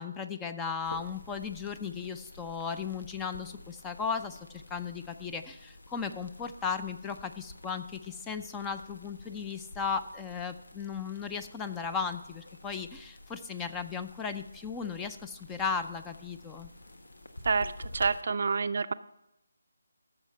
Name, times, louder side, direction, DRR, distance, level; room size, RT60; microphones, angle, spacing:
voice 1, 0.0-16.7, left 6 dB, 10° left, 8 dB, 0.5 m, -36 dB
sound 1, 0.8-18.2, left 2 dB, 75° left, 1.3 m, -50 dB
voice 2, 17.4-18.9, right 4 dB, 50° right, 12 dB, 0.5 m, -28 dB
14.5 x 6.4 x 5.6 m, 0.87 s
figure-of-eight pair, 155°, 0 cm